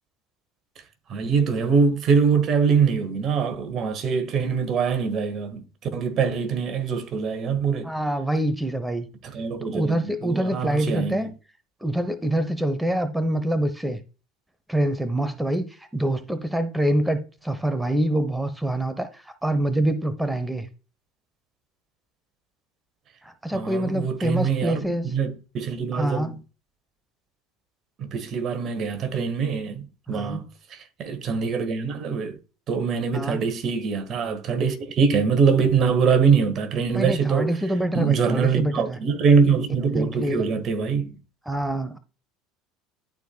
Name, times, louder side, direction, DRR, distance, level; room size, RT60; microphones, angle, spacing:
voice 1, 1.1-5.6 5.9-7.9 9.2-11.3 23.5-24.8 25.1-26.4 28.0-30.4 30.7-32.4 32.7-37.5 37.9-41.2, right 6 dB, 45° right, 1.4 m, -23 dB
voice 2, 7.8-9.1 9.7-11.3 11.8-14.0 14.7-20.7 23.2-25.1 25.9-26.4 30.1-30.5 33.1-33.4 36.9-39.0 39.9-40.4 41.5-42.0, right 1 dB, 5° right, 0.8 m, -25 dB
11.5 x 4.5 x 2.3 m
hypercardioid pair, 70°, 0 cm